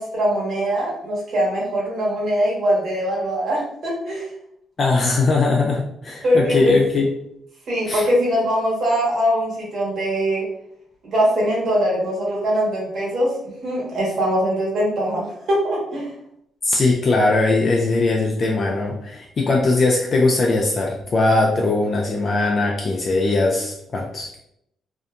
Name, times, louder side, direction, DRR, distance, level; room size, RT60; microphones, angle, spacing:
voice 1, 0.0-4.3 6.2-6.7 7.7-10.4 11.0-13.3 13.6-16.1, equal, 60° right, -5 dB, 1.3 m, -22 dB
voice 2, 4.8-7.1 7.9-8.0 16.6-24.3, left 3 dB, 45° left, -1 dB, 0.4 m, -20 dB
2.7 x 2.2 x 2.4 m, 0.75 s
cardioid pair, 90°, 0 cm